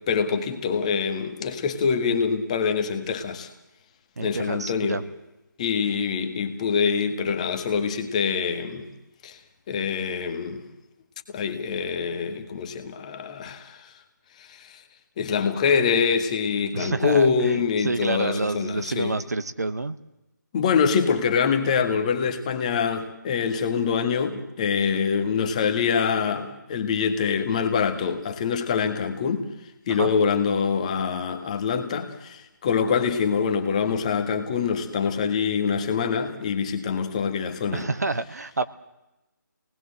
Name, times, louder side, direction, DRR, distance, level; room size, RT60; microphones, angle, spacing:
voice 1, 0.1-3.5 4.2-5.0 5.6-8.9 9.2-9.4 9.7-10.6 11.3-13.9 14.4-14.8 15.2-19.1 20.5-29.5 29.9-37.8, left 6 dB, 20° left, 1.7 m, -25 dB
voice 2, 4.2-5.0 16.7-19.9 29.9-30.1 37.7-38.6, right 3 dB, 55° right, 1.2 m, -28 dB
28.0 x 19.5 x 7.8 m
figure-of-eight pair, 155°, 10 cm